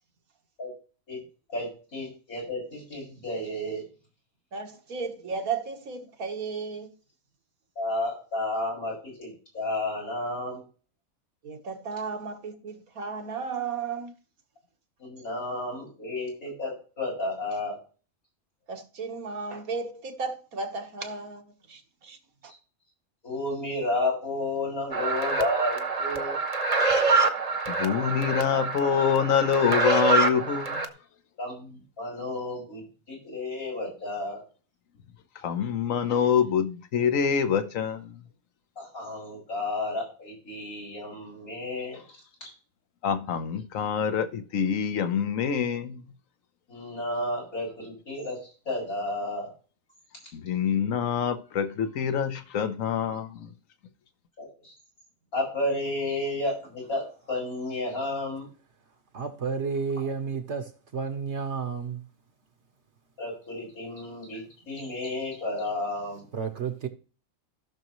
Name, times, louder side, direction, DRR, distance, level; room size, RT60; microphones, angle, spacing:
voice 1, 1.5-3.8 7.8-10.6 15.0-17.8 23.2-26.4 31.4-32.8 33.1-34.4 38.8-42.0 42.4-42.5 46.7-48.4 48.6-49.5 54.4-54.7 55.3-58.5 63.2-66.2, left 2 dB, 85° left, 6.4 m, -32 dB
voice 2, 4.5-6.9 11.4-14.2 18.7-22.2 22.4-22.5, right 5 dB, 85° right, 1.8 m, -34 dB
sound 1, 24.9-30.9, right 4 dB, 30° right, 0.9 m, -26 dB
voice 3, 27.7-30.9 35.3-38.2 43.0-46.0 50.3-53.5, left 7 dB, 70° left, 1.3 m, -26 dB
voice 4, 59.1-62.0 66.3-66.9, right 5 dB, 60° right, 1.2 m, -31 dB
15.5 x 6.3 x 3.1 m
omnidirectional pair, 1.5 m